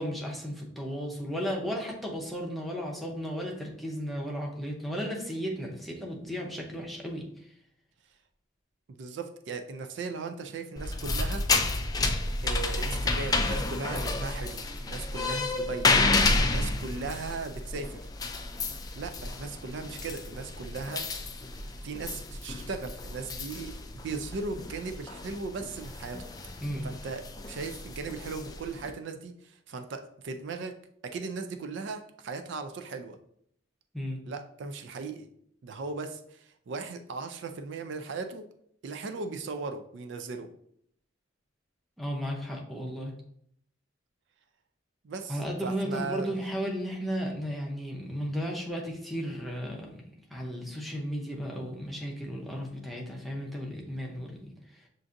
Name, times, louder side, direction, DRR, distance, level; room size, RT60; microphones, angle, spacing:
voice 1, 0.0-7.2 26.6-26.9 33.9-34.2 42.0-43.1 45.3-50.0 50.3-54.5, equal, ahead, -2 dB, 0.7 m, -34 dB
voice 2, 8.9-11.4 12.4-15.9 16.4-18.0 19.0-21.1 21.8-26.3 26.8-30.8 31.0-33.2 34.2-35.3 35.6-38.4 38.8-40.5 45.0-46.3, right 4 dB, 65° right, 6 dB, 0.4 m, -37 dB
sound 1, 10.8-28.9, left 3 dB, 20° left, 0.3 m, -31 dB
6.8 x 2.5 x 2.5 m, 0.70 s
head